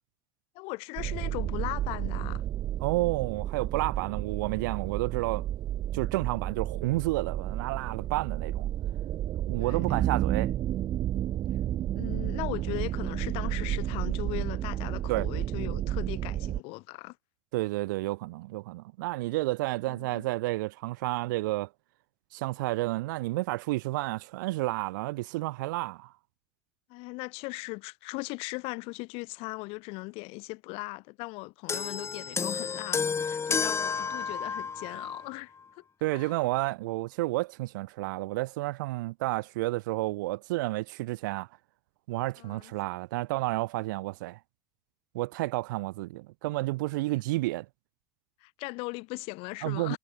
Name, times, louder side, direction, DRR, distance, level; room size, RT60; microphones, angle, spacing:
voice 1, 0.5-2.4 9.6-10.0 12.0-17.2 19.9-20.2 26.9-35.8 36.1-36.3 42.4-42.7 48.4-50.0, left 26 dB, 70° left, 6.1 m, -38 dB
sound 1, 1.0-16.6, right 12 dB, 50° right, 1.9 m, -31 dB
voice 2, 2.8-5.5 5.9-8.7 9.5-10.5 15.1-15.3 17.5-21.7 22.3-26.1 36.0-41.5 42.1-44.4 45.1-47.6 49.6-50.0, right 20 dB, 90° right, 1.6 m, -31 dB
sound 2, 31.7-35.3 36.2-36.3, left 5 dB, 25° left, 7.3 m, -31 dB
supercardioid pair, 105°, 10 cm